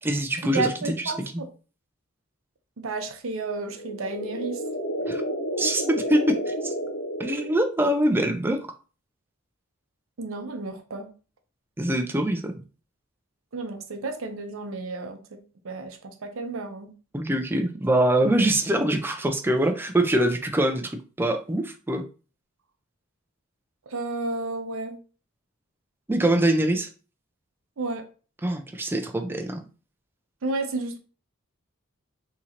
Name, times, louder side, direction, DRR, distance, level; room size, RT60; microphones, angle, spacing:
voice 1, 0.0-1.1 5.1-5.2 5.6-6.7 7.2-8.6 11.8-12.5 17.1-22.0 26.1-26.9 28.4-29.6, right 1 dB, 10° right, 0.4 m, -24 dB
voice 2, 0.5-1.5 2.8-4.6 10.2-11.1 13.5-16.9 23.9-25.0 27.8-28.1 30.4-31.0, right 3 dB, 75° right, 0.6 m, -32 dB
sound 1, 3.7-7.9, equal, 80° left, 0.6 m, -31 dB
3.7 x 2.9 x 2.8 m
head